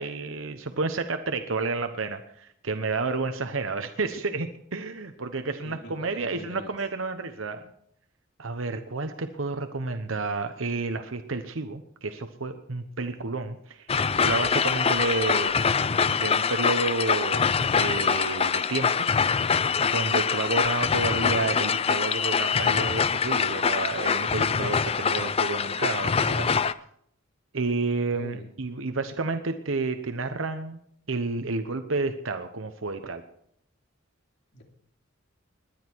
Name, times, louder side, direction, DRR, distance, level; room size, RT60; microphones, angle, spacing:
voice 1, 0.0-7.7 8.4-13.9 14.1-15.5 16.0-17.5 17.8-19.1 19.8-26.5 27.5-30.8 31.1-33.2, right 3 dB, 75° right, 8 dB, 1.0 m, -30 dB
voice 2, 5.6-6.7 15.2-15.4 28.1-28.5 34.5-34.6, left 1 dB, 55° left, 2 dB, 3.0 m, -43 dB
sound 1, 13.9-26.7, left 6 dB, 30° left, 0.5 m, -24 dB
20.5 x 10.5 x 4.7 m, 0.69 s
head